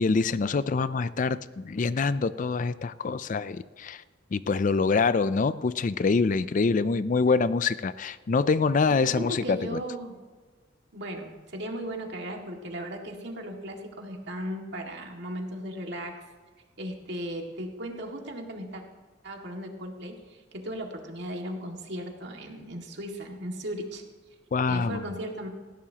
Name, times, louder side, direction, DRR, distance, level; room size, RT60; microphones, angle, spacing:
voice 1, 0.0-4.0 4.3-9.8 24.5-25.0, left 4 dB, 40° left, 15 dB, 0.4 m, -25 dB
voice 2, 9.0-10.1 10.9-16.2 16.8-18.8 19.2-24.0 24.7-25.5, equal, 60° right, 1 dB, 2.1 m, -36 dB
19.0 x 16.0 x 2.9 m, 1.4 s
head